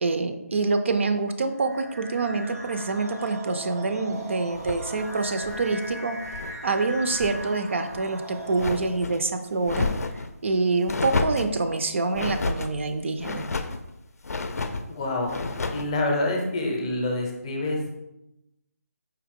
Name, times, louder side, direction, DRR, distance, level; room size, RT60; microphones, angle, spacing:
voice 1, 0.0-13.5, right 3 dB, 50° right, 7 dB, 0.4 m, -26 dB
sound 1, 1.6-9.2, right 1 dB, 85° right, 0.8 m, -39 dB
sound 2, 4.5-6.6 6.9-7.5 7.9-9.2 9.6-10.3 10.9-11.6 12.1-12.7 13.2-13.8 14.2-14.9 15.3-15.9, left 3 dB, 75° left, 0.4 m, -31 dB
voice 2, 14.9-15.3 15.7-17.9, left 2 dB, 20° left, 0 dB, 0.6 m, -27 dB
4.7 x 2.9 x 3.5 m, 0.89 s
figure-of-eight pair, 165°, 8 cm